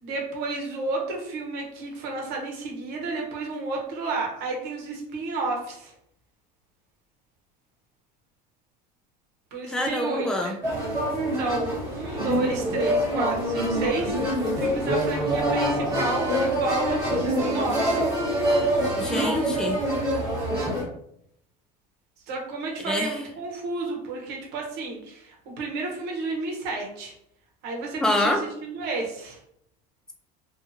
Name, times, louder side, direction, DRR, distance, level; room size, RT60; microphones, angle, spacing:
voice 1, 0.0-5.9 9.5-10.5 11.3-14.2 14.6-18.0 22.3-27.1 27.6-28.3 28.6-29.4, right 3 dB, 60° right, 0 dB, 1.0 m, -31 dB
voice 2, 9.7-10.5 19.0-19.8 22.8-23.2 28.0-28.4, left 1 dB, 5° left, 3 dB, 0.4 m, -25 dB
sound 1, 10.6-20.8, right 1 dB, 15° right, 1.3 m, -25 dB
2.6 x 2.5 x 2.6 m, 0.73 s
supercardioid pair, 125°, 19 cm